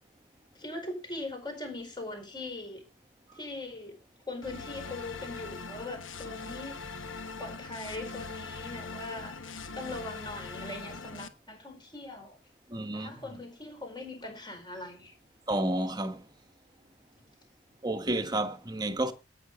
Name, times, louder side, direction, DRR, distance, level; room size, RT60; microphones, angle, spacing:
voice 1, 0.5-2.8 3.3-3.9 4.3-6.7 7.4-12.4 12.9-15.1, left 2 dB, 25° left, 4.7 m, -41 dB
sound 1, 4.4-11.3, left 4 dB, 75° left, 1.2 m, -41 dB
voice 2, 12.7-13.1 15.5-16.2 17.8-19.1, right 1 dB, 20° right, 1.3 m, -30 dB
17.5 x 6.0 x 4.9 m
head